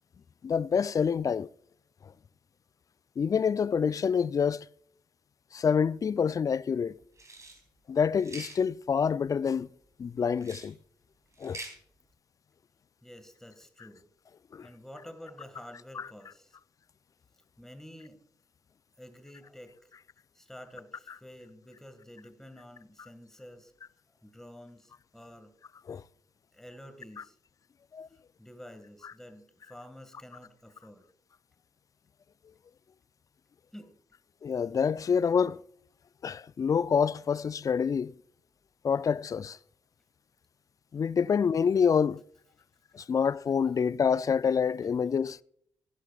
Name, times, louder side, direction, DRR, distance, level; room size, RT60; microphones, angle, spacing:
voice 1, 0.4-1.5 3.2-4.6 5.5-6.9 7.9-9.7 10.0-10.8 11.4-11.6 14.5-14.7 16.0-16.1 25.9-26.0 27.9-28.1 34.4-35.6 36.2-38.1 38.8-39.6 40.9-42.2 42.9-45.4, left 6 dB, 40° left, 0.3 m, -27 dB
sound 1, 7.2-7.6 8.2-8.6 10.4-10.7 11.3-11.7, right 2 dB, 35° right, 3.7 m, -44 dB
voice 2, 13.0-14.1 14.6-16.6 17.6-18.2 19.0-19.9 20.3-23.7 24.2-25.5 26.5-27.4 28.1-31.1 33.7-34.0 41.1-41.3, equal, 5° left, 1.8 m, -49 dB
15.5 x 11.5 x 2.4 m
hypercardioid pair, 40°, 9 cm